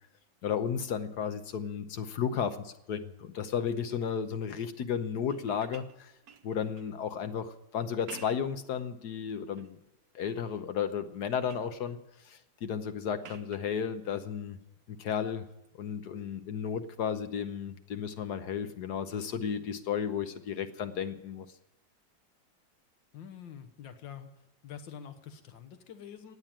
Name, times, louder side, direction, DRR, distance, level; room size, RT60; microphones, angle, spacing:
voice 1, 0.4-6.1 6.4-9.8 10.1-12.0 12.2-14.6 14.9-15.4 15.8-21.5, left 7 dB, 65° left, 9 dB, 1.3 m, -33 dB
sound 1, 5.3-7.0 7.9-8.6 9.1-9.7 10.3-10.7 11.0-11.8 13.2-13.8 15.5-15.7, right 6 dB, 60° right, 1.2 m, -52 dB
voice 2, 23.1-24.3 24.6-26.4, left 8 dB, 85° left, 9 dB, 1.8 m, -46 dB
16.5 x 9.2 x 8.7 m, 0.91 s
omnidirectional pair, 2.0 m